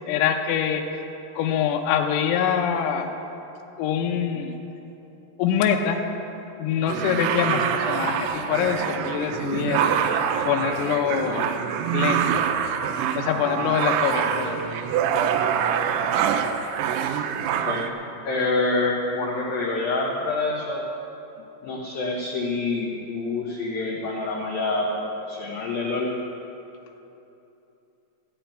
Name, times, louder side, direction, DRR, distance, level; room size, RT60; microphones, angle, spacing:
voice 1, 0.1-0.8 1.4-3.1 3.8-4.6 5.4-6.0 6.6-10.0 10.4-11.5 11.9-12.4 13.2-14.6, left 8 dB, 90° left, 4 dB, 3.6 m, -24 dB
sound 1, 6.9-17.9, right 8 dB, 85° right, 3.3 m, -25 dB
voice 2, 17.5-17.8 18.2-20.8 21.6-26.1, left 3 dB, 70° left, -3 dB, 2.2 m, -26 dB
12.5 x 8.8 x 9.0 m, 2.9 s
omnidirectional pair, 5.9 m